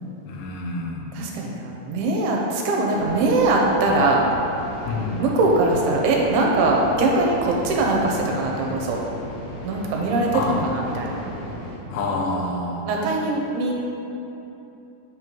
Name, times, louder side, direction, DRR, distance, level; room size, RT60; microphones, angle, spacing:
voice 1, 0.3-1.0 4.9-5.2 10.3-10.6 11.9-12.9, left 2 dB, 85° left, -1 dB, 2.8 m, -27 dB
voice 2, 1.1-4.3 5.2-9.0 9.6-11.1 12.9-13.7, right 2 dB, 80° right, -1 dB, 2.5 m, -21 dB
sound 1, 2.9-11.8, equal, 50° left, 1.9 m, -35 dB
8.1 x 5.3 x 3.0 m, 2.9 s
omnidirectional pair, 4.6 m